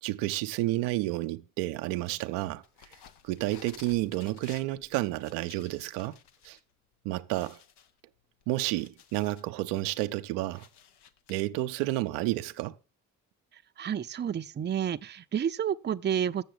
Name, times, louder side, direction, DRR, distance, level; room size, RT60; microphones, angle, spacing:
voice 1, 0.0-2.6 3.2-6.2 6.4-6.6 7.0-7.6 8.5-10.7 11.3-12.7, right 17 dB, 85° right, 0.6 m, -30 dB
sound 1, 2.6-6.6 6.9-7.0 7.3-9.5 10.0-11.3, left 8 dB, 75° left, 0.9 m, -54 dB
voice 2, 13.8-16.4, right 9 dB, 25° right, 0.5 m, -30 dB
7.1 x 6.8 x 7.6 m
hypercardioid pair, 55°, 41 cm